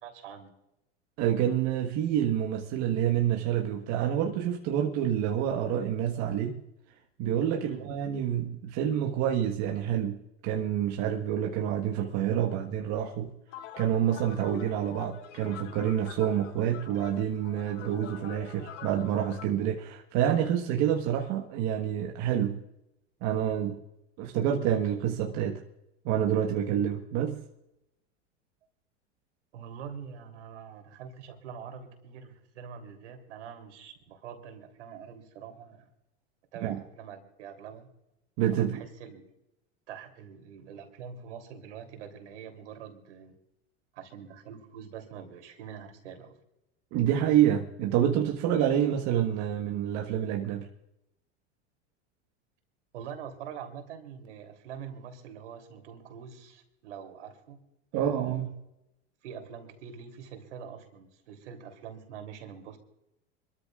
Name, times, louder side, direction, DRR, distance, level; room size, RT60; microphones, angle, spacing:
voice 1, 0.0-0.5 7.6-7.9 29.5-35.9 36.5-37.9 38.6-39.3 39.9-43.3 43.9-46.3 52.9-57.6 57.9-58.5 59.2-62.8, right 7 dB, 80° right, 3.4 m, -44 dB
voice 2, 1.2-6.6 7.2-10.2 10.4-13.3 13.8-22.6 23.2-23.8 24.2-25.6 26.0-27.4 36.6-36.8 38.4-38.8 46.9-50.7 57.9-58.5, right 10 dB, 50° right, 1.6 m, -28 dB
sound 1, 13.5-19.5, left 10 dB, 80° left, 1.3 m, -46 dB
26.0 x 13.5 x 2.5 m
hypercardioid pair, 110°, 35 cm